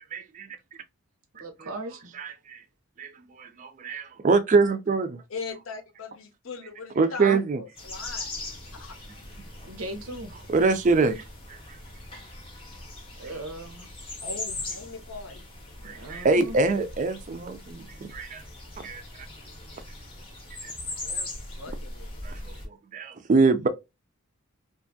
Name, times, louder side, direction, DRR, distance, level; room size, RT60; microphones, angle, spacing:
voice 1, 0.1-0.5 2.2-2.6 3.0-3.1 3.4-5.2 7.0-7.6 10.5-11.2 11.5-11.6 15.8-18.4 18.8-19.0 20.6-20.7 22.2-22.4 22.9-23.7, right 3 dB, 35° right, 0.3 m, -24 dB
voice 2, 1.4-2.1 7.2-7.4 9.6-10.3 13.2-13.9 15.8-16.6, right 2 dB, 90° right, 0.7 m, -37 dB
voice 3, 5.3-7.3 7.6-8.3 8.7-8.9 14.2-15.4 21.0-22.5, left 4 dB, 70° left, 0.6 m, -40 dB
sound 1, 7.8-22.7, left 2 dB, 25° left, 0.6 m, -40 dB
2.5 x 2.3 x 2.5 m
head